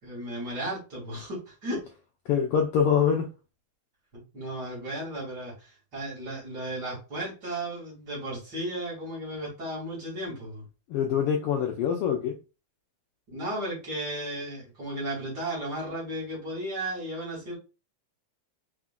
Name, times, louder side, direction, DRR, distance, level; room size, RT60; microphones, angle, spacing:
voice 1, 0.0-1.8 4.1-10.6 13.3-17.6, right 1 dB, 35° right, 2.6 m, -35 dB
voice 2, 2.3-3.3 10.9-12.4, left 7 dB, 85° left, 1.3 m, -24 dB
4.9 x 3.8 x 2.4 m
omnidirectional pair, 3.3 m